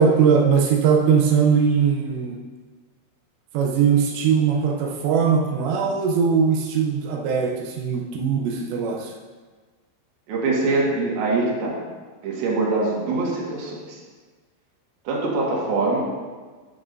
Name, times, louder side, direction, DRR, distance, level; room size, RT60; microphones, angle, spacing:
voice 1, 0.0-2.4 3.5-9.1, right 6 dB, 90° right, 0 dB, 2.5 m, -20 dB
voice 2, 10.3-11.8 12.2-14.0 15.0-16.0, right 3 dB, 60° right, -3 dB, 2.9 m, -23 dB
17.5 x 6.1 x 2.6 m, 1.4 s
omnidirectional pair, 5.9 m